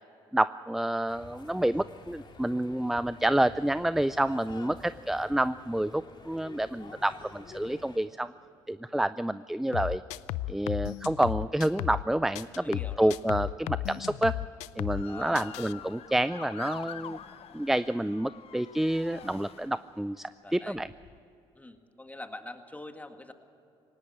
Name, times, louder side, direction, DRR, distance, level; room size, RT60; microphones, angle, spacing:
voice 1, 0.3-8.3 8.7-10.0 10.5-14.4 14.8-17.2 17.5-20.9, right 1 dB, 5° right, 16 dB, 0.4 m, -28 dB
sound 1, 1.1-8.0, left 3 dB, 40° left, 2.6 m, -50 dB
sound 2, 9.7-12.1 12.3-15.1 15.3-15.7, left 16 dB, 80° left, 0.5 m, -34 dB
voice 2, 12.6-13.1 15.1-15.6 20.4-20.8 21.6-23.3, left 2 dB, 15° left, 7 dB, 1.9 m, -43 dB
Motor vehicle (road) / Siren, 14.9-20.1 20.7-21.2, left 9 dB, 60° left, 0.9 m, -46 dB
19.0 x 17.5 x 8.6 m, 2.9 s
supercardioid pair, 70°, 12 cm